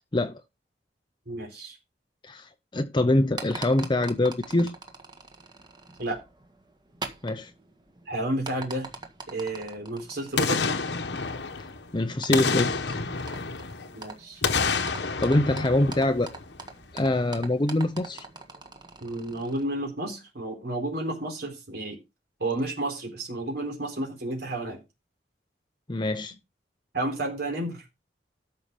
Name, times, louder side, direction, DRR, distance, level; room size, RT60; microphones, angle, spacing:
voice 1, 1.3-1.8 6.0-6.2 8.1-8.9 9.3-10.6 13.9-14.4 19.0-22.0 22.4-24.8 26.9-27.9, right 1 dB, 65° right, 3.9 m, -31 dB
voice 2, 2.2-4.8 7.2-7.5 11.9-12.8 15.2-16.3 16.9-18.3 25.9-26.3, left 1 dB, 25° left, 0.7 m, -24 dB
sound 1, 3.2-19.6, right 3 dB, 25° right, 1.7 m, -44 dB
Boom, 10.4-11.9 12.3-14.0 14.4-16.7 17.0-17.1, left 4 dB, 75° left, 1.2 m, -28 dB
13.0 x 5.7 x 5.1 m
head